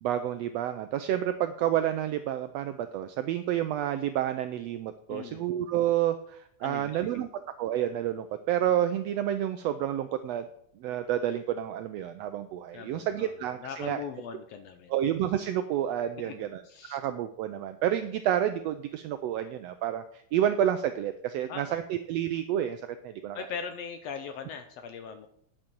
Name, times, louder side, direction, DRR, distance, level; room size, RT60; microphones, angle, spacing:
voice 1, 0.0-7.3 7.6-10.5 10.8-14.0 14.9-16.6 16.9-23.4, right 11 dB, 90° right, 9 dB, 1.4 m, -29 dB
voice 2, 5.1-5.5 6.6-7.0 12.7-14.9 16.2-17.0 21.5-21.8 23.3-25.3, left 6 dB, 75° left, 8 dB, 1.6 m, -40 dB
10.0 x 7.5 x 4.5 m, 0.68 s
omnidirectional pair, 3.4 m